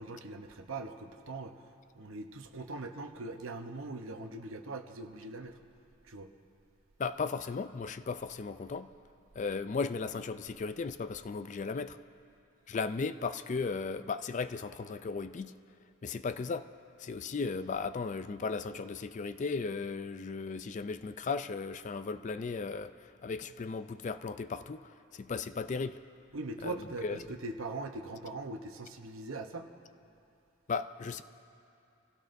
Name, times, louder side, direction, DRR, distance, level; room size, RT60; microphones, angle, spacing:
voice 1, 0.0-1.5 1.9-5.6 6.0-6.3 26.3-29.7, right 2 dB, 75° right, 5 dB, 0.9 m, -41 dB
voice 2, 7.0-8.9 9.4-12.0 12.7-15.5 16.0-16.7 17.0-26.0 26.6-26.8 27.0-27.2 30.7-31.2, left 4 dB, 35° left, 11 dB, 0.4 m, -36 dB
26.0 x 16.5 x 2.6 m, 2.6 s
head